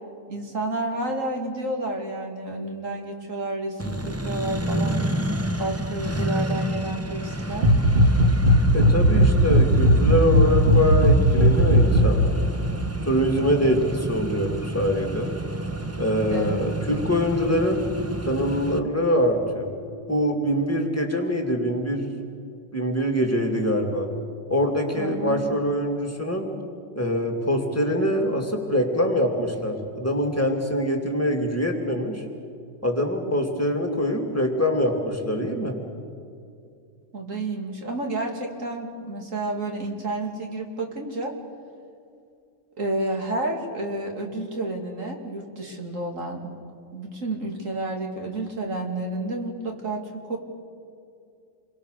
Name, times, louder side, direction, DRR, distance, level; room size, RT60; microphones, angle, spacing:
voice 1, 0.3-5.0 5.6-7.7 16.3-16.7 25.0-25.6 37.1-41.3 42.8-46.4 46.9-50.4, right 2 dB, 85° right, 2 dB, 3.1 m, -30 dB
Accelerating revving vroom, 3.8-18.8, right 1 dB, 15° right, 0.9 m, -30 dB
sound 1, 7.5-12.2, equal, 45° right, 1.8 m, -17 dB
voice 2, 8.7-12.3 13.1-15.3 16.0-17.8 18.3-19.7 20.1-22.1 22.7-24.1 24.5-26.5 26.9-32.2 32.8-35.8, equal, 10° left, 2 dB, 2.7 m, -24 dB
29.0 x 23.0 x 6.8 m, 2.5 s
omnidirectional pair, 1.3 m